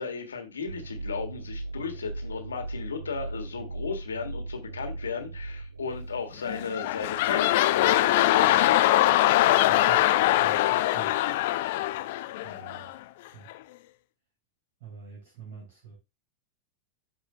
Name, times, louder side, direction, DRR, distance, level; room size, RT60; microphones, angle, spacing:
voice 1, 0.0-8.8, left 5 dB, 70° left, 1.6 m, -35 dB
sound 1, 0.7-7.9, right 2 dB, 75° right, 0.6 m, -39 dB
sound 2, 6.4-13.0 13.5-13.6, left 15 dB, 50° left, 0.5 m, -23 dB
voice 2, 9.7-10.1 10.4-11.2 12.4-12.9 13.3-13.5 14.8-16.0, right 6 dB, 55° right, 3.3 m, -46 dB
13.5 x 4.8 x 2.2 m
figure-of-eight pair, 90°, 0 cm